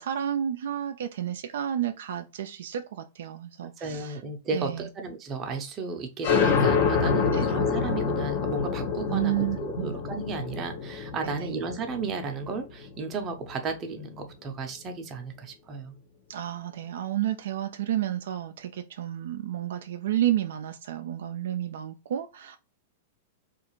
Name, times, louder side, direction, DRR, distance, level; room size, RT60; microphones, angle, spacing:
voice 1, 0.0-4.2 4.5-4.9 7.3-7.6 9.1-10.0 11.2-11.5 16.3-22.6, right 11 dB, 75° right, 0.3 m, -31 dB
voice 2, 3.8-16.0, right 4 dB, 30° right, 0.6 m, -34 dB
sound 1, 6.2-13.5, left 5 dB, 60° left, 0.7 m, -27 dB
2.4 x 2.4 x 3.0 m
hypercardioid pair, 120°, 0 cm